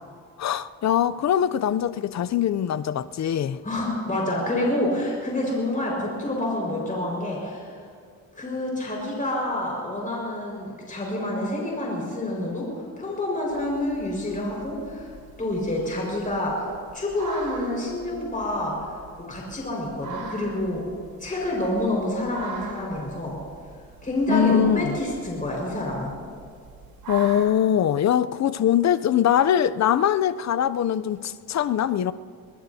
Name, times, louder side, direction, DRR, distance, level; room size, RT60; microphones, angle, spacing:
voice 1, 0.4-3.6 24.3-25.0 27.1-32.1, left 9 dB, 50° left, 0.5 m, -22 dB
voice 2, 3.6-7.8 8.3-19.0 19.3-20.8 21.2-23.4 24.0-26.1, left 1 dB, 25° left, 5.1 m, -28 dB
sound 1, 13.5-27.5, right 4 dB, 80° right, 3.6 m, -43 dB
23.0 x 20.5 x 2.8 m
cardioid pair, 95°, 35 cm